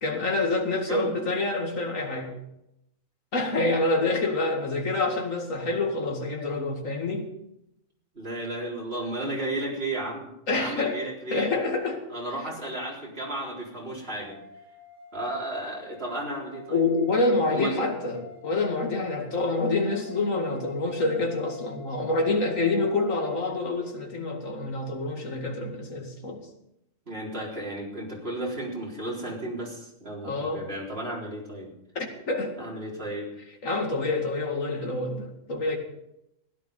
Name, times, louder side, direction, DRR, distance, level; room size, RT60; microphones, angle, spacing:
voice 1, 0.0-2.4 3.3-7.3 9.2-9.3 10.5-11.0 11.3-12.0 16.7-26.4 30.2-30.7 31.9-32.7 33.6-35.8, left 2 dB, 80° left, 3 dB, 2.6 m, -27 dB
voice 2, 8.1-10.3 10.6-11.5 12.1-14.4 15.1-16.8 17.5-17.9 27.1-31.7 32.6-33.3, right 1 dB, 50° right, -3 dB, 4.2 m, -33 dB
sound 1, 14.2-23.5, left 3 dB, 20° right, 6.8 m, -47 dB
16.0 x 11.0 x 5.4 m, 0.82 s
omnidirectional pair, 1.4 m